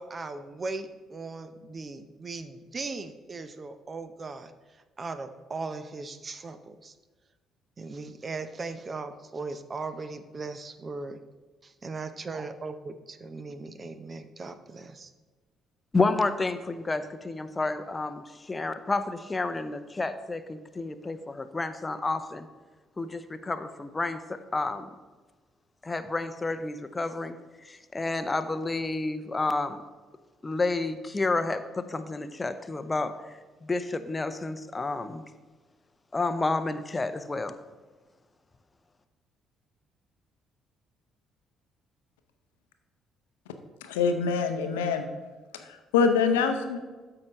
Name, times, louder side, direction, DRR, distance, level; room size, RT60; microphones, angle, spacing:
voice 1, 0.0-4.5 5.0-6.9 7.8-11.2 11.6-15.1, right 3 dB, 35° right, 10 dB, 0.6 m, -38 dB
voice 2, 15.9-22.5 23.0-24.9 25.8-27.4 27.6-29.8 30.4-35.2 36.1-37.6, left 3 dB, 25° left, 10 dB, 0.6 m, -30 dB
voice 3, 43.8-45.0 45.6-46.8, left 5 dB, 80° left, 7 dB, 0.6 m, -25 dB
12.5 x 4.8 x 3.0 m, 1.3 s
hypercardioid pair, 45°, 0 cm